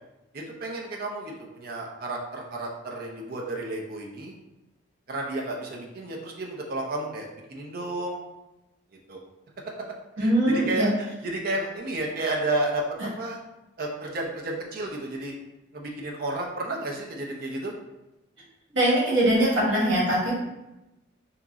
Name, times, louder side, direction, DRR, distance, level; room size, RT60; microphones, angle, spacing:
voice 1, 0.3-4.3 5.1-8.2 9.1-9.2 10.2-12.8 13.2-13.4 13.8-15.3 15.7-17.7, right 2 dB, 45° right, -1 dB, 0.5 m, -31 dB
voice 2, 10.2-10.9 18.7-20.3, right 1 dB, 70° right, -5 dB, 1.3 m, -22 dB
2.9 x 2.4 x 3.8 m, 0.97 s
head